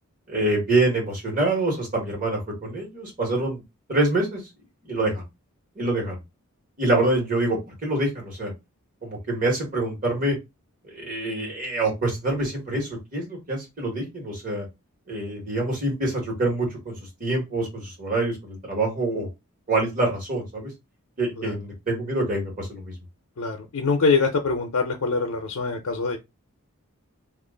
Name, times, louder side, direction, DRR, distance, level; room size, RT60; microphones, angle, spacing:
voice 1, 0.3-3.6 3.9-4.4 4.8-5.2 5.7-6.1 6.8-8.5 9.0-10.4 10.8-14.6 15.1-16.9 17.2-19.3 19.7-20.7 21.2-22.9, right 2 dB, 40° right, 1.7 m, -26 dB
voice 2, 23.4-26.2, left 4 dB, 85° left, 0.6 m, -24 dB
3.0 x 2.4 x 3.7 m
head